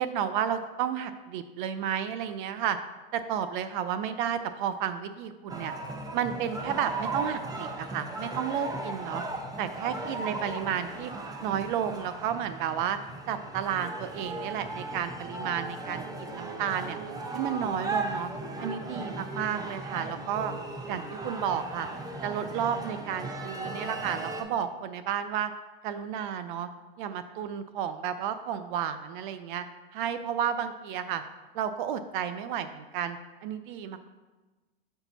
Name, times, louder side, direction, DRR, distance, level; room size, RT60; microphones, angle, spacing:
voice 1, 0.0-2.8 3.1-5.8 6.1-9.2 9.6-11.1 11.4-13.0 13.3-17.0 17.3-18.3 18.6-20.5 20.8-21.9 22.2-25.5 25.8-26.7 27.0-29.6 29.9-31.2 31.5-34.1, right 9 dB, 55° right, 11 dB, 0.5 m, -32 dB
sound 1, 5.5-24.4, right 2 dB, 15° right, 0.6 m, -37 dB
6.5 x 4.5 x 4.0 m, 1.2 s
hypercardioid pair, 105°, 30 cm